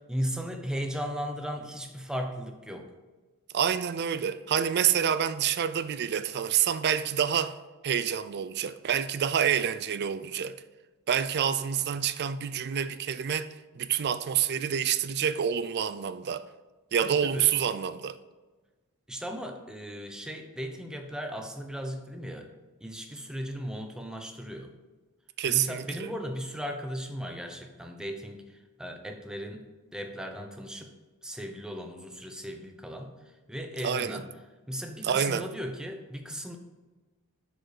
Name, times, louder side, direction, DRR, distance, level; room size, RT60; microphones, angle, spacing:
voice 1, 0.1-2.9 17.0-17.5 19.1-22.5 22.8-24.7 25.5-29.6 29.9-30.9 31.2-33.1 33.5-34.3 34.7-36.6, equal, 5° right, 0.7 m, -36 dB
voice 2, 3.5-7.6 7.8-10.6 11.1-16.5 16.9-18.2 25.4-26.1 33.8-34.2 35.0-35.5, right 8 dB, 50° right, 0.4 m, -28 dB
6.2 x 5.1 x 6.5 m
head